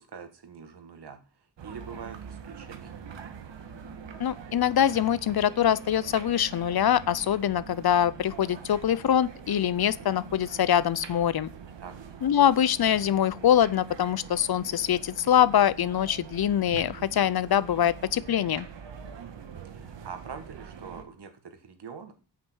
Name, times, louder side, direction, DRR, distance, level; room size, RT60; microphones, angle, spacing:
voice 1, 0.0-3.0 11.8-11.9 19.2-22.1, right 6 dB, 65° right, 7 dB, 1.9 m, -44 dB
sound 1, 1.6-21.0, right 6 dB, 85° right, 1.6 m, -44 dB
voice 2, 4.2-11.5 12.2-18.7, left 10 dB, 60° left, 18 dB, 0.6 m, -24 dB
8.7 x 8.7 x 6.3 m, 0.36 s
wide cardioid pair, 115°, 43 cm